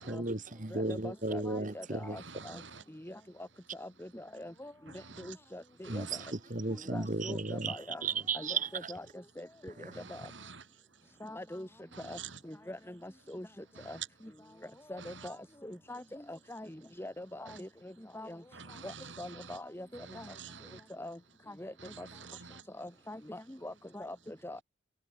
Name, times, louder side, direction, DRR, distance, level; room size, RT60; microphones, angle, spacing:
voice 1, 0.0-2.2 5.9-8.9 9.8-10.0, right 3 dB, 45° right, 2.0 m, -35 dB
voice 2, 0.7-2.6 3.0-3.2 3.8-4.7 5.2-6.0 6.7-8.0 8.3-9.1 9.4-9.7 10.1-10.2 11.2-11.7 12.0-12.2 12.4-13.5 13.9-14.0 14.9-15.4 15.6-18.4 18.8-20.3 21.0-21.2 21.5-22.1 22.8-24.6, left 1 dB, 10° left, 1.7 m, -44 dB
voice 3, 2.2-2.8 4.9-5.4 5.8-6.3 9.9-10.7 11.9-12.4 13.7-14.1 15.0-15.3 17.5-17.6 18.5-19.6 19.9-20.8 21.8-22.6, right 6 dB, 75° right, 4.2 m, -48 dB
head